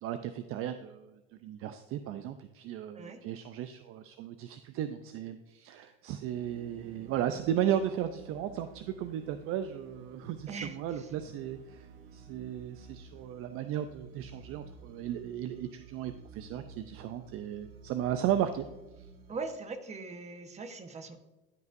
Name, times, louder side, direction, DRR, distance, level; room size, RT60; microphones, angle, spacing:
voice 1, 0.0-11.9 12.1-18.6, right 10 dB, 45° right, 10 dB, 0.5 m, -35 dB
sound 1, 6.3-19.4, right 4 dB, 70° right, 1.1 m, -52 dB
voice 2, 10.5-11.1 19.3-21.2, right 4 dB, 20° right, 7 dB, 1.1 m, -40 dB
14.5 x 5.4 x 2.6 m, 1.1 s
supercardioid pair, 105°, 31 cm